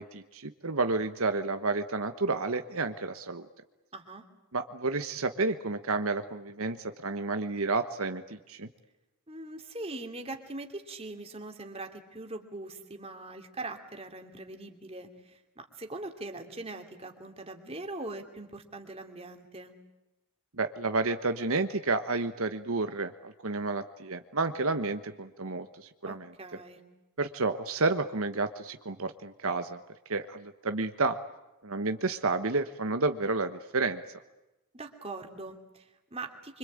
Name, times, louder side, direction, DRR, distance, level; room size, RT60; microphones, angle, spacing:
voice 1, 0.0-3.4 4.5-8.7 20.6-26.3 27.2-29.8 30.1-31.2 31.6-34.0, right 3 dB, 70° right, 8 dB, 1.3 m, -30 dB
voice 2, 3.9-4.2 9.3-19.7 26.1-26.8 34.7-36.6, right 2 dB, 25° right, 4 dB, 2.9 m, -42 dB
26.0 x 25.5 x 8.8 m, 0.97 s
head